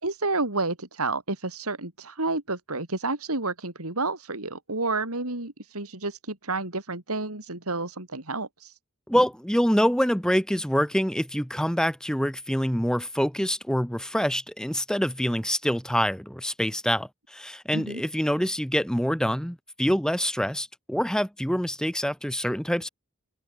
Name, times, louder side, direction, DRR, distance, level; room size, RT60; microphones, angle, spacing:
voice 1, 0.0-8.7 17.7-18.0, right 3 dB, 80° right, 5.1 m, -30 dB
voice 2, 9.1-22.9, equal, 5° left, 3.4 m, -26 dB
open air
head